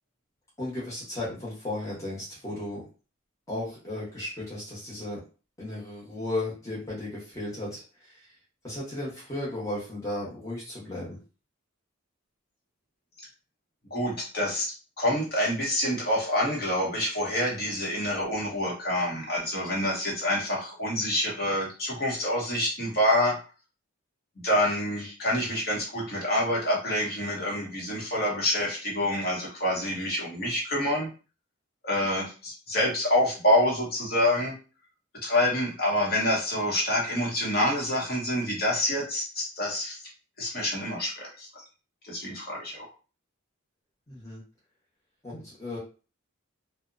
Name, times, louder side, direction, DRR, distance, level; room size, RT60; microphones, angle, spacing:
voice 1, 0.6-2.8 3.5-5.2 5.6-8.4 8.6-11.2 44.1-44.4 45.2-45.8, left 1 dB, 15° left, -7 dB, 0.9 m, -35 dB
voice 2, 13.9-14.7 15.0-23.4 24.4-31.1 31.8-34.5 35.2-40.0 40.4-41.6 42.0-42.8, left 1 dB, 45° left, -3 dB, 0.9 m, -27 dB
2.7 x 2.1 x 2.5 m, 0.34 s
head